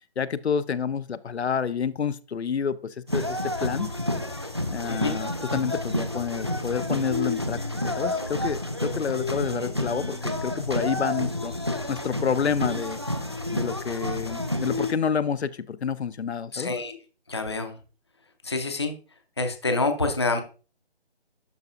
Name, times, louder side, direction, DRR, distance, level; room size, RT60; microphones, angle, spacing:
voice 1, 0.2-3.9 4.7-11.5 11.9-13.0 13.5-16.7, left 6 dB, 85° left, 0.6 m, -29 dB
sound 1, 3.1-14.9, left 1 dB, 25° right, 0.4 m, -29 dB
voice 2, 16.5-17.0 17.3-17.8 18.4-18.9 19.4-20.4, left 3 dB, 25° left, 0.5 m, -27 dB
12.0 x 4.1 x 2.4 m
figure-of-eight pair, 165°, 32 cm